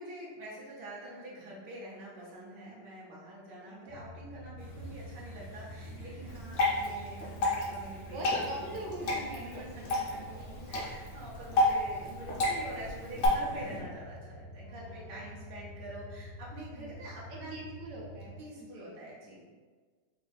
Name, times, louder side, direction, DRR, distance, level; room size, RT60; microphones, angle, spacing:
voice 1, 0.0-8.8 9.0-9.1 10.7-17.5 18.4-19.4, right 1 dB, 50° right, -6 dB, 0.6 m, -46 dB
sound 1, 3.9-18.4, equal, 85° left, 1.3 m, -48 dB
sound 2, 4.6-13.8, equal, 30° left, 0.7 m, -51 dB
Water / Drip, 6.3-13.3, left 2 dB, 55° left, 1.1 m, -31 dB
voice 2, 6.4-6.9 7.8-10.7 14.6-15.3 16.8-17.2 17.5-18.9, right 1 dB, 70° right, -2 dB, 1.2 m, -44 dB
3.4 x 2.6 x 3.4 m, 1.5 s
omnidirectional pair, 2.0 m